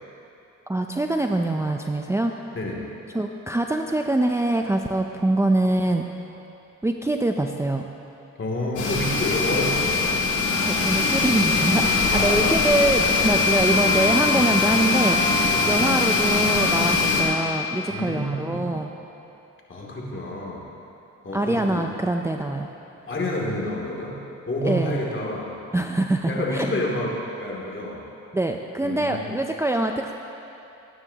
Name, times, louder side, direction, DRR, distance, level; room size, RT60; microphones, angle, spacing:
voice 1, 0.7-2.3 3.1-6.0 6.8-7.9 10.6-15.2 15.7-18.9 21.3-22.7 24.7-25.0 25.7-26.7 28.3-30.1, right 1 dB, 10° right, 3 dB, 0.6 m, -24 dB
voice 2, 8.4-10.2 12.1-12.6 15.5-15.7 17.9-18.7 19.7-20.6 21.2-21.9 23.1-24.2 24.5-25.5 26.3-28.0 28.8-29.3, left 1 dB, 40° left, -3 dB, 2.8 m, -29 dB
sound 1, 8.8-17.2, left 4 dB, 75° left, 2.8 m, -21 dB
19.5 x 9.7 x 2.9 m, 2.9 s
cardioid pair, 70°, 31 cm